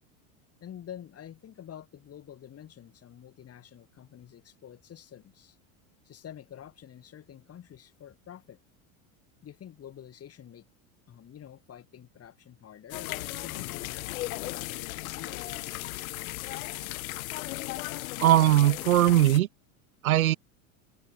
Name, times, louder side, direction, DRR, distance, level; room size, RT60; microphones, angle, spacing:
voice 1, 0.6-5.6 6.0-8.6 9.4-10.7 11.1-15.8, left 10 dB, 35° left, 4.8 m, -48 dB
sound 1, 12.9-19.4, left 19 dB, 80° left, 1.4 m, -36 dB
voice 2, 18.2-19.5 20.0-20.4, right 14 dB, 90° right, 1.9 m, -20 dB
hypercardioid pair, 100°, 41 cm